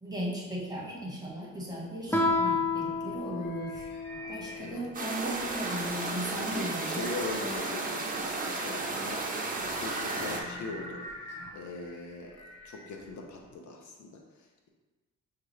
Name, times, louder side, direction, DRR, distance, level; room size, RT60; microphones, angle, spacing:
voice 1, 0.0-3.8 4.3-7.0, equal, 15° right, -4 dB, 1.3 m, -37 dB
sound 1, 2.1-13.5, equal, 90° left, 1.1 m, -46 dB
Guitar, 2.1-4.6, left 3 dB, 5° left, 0.7 m, -30 dB
voice 2, 4.3-4.8 6.3-9.2 9.6-11.0 11.5-14.7, left 3 dB, 70° left, 1 dB, 0.7 m, -41 dB
sound 2, 4.9-10.4, right 3 dB, 30° right, 0.7 m, -33 dB
6.6 x 2.4 x 3.2 m, 1.2 s
cardioid pair, 90°, 30 cm